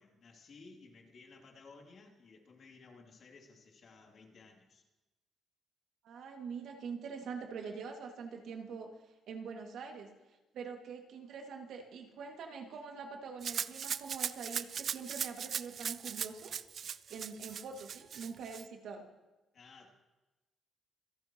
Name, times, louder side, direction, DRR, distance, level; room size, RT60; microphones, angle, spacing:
voice 1, 0.0-4.8 19.5-19.9, left 4 dB, 55° left, 1 dB, 2.9 m, -57 dB
voice 2, 6.0-8.9 9.3-10.1 10.5-16.5 17.1-19.1, right 5 dB, 75° right, 2 dB, 2.2 m, -44 dB
Rattle (instrument), 13.4-18.6, right 7 dB, 55° right, 0.4 m, -39 dB
26.5 x 11.0 x 3.1 m, 1.1 s
cardioid pair, 90°, 0 cm